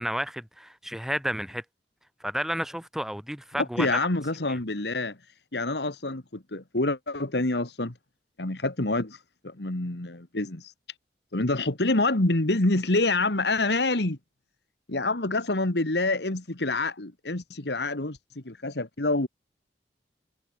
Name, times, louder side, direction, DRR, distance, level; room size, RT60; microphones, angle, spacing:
voice 1, 0.0-1.6 2.2-4.1 4.5-4.6, equal, ahead, 3.0 m, -31 dB
voice 2, 3.6-5.2 5.5-7.9 8.4-9.2 9.4-10.7 11.3-14.2 14.9-19.3, left 2 dB, 70° left, 2.0 m, -27 dB
head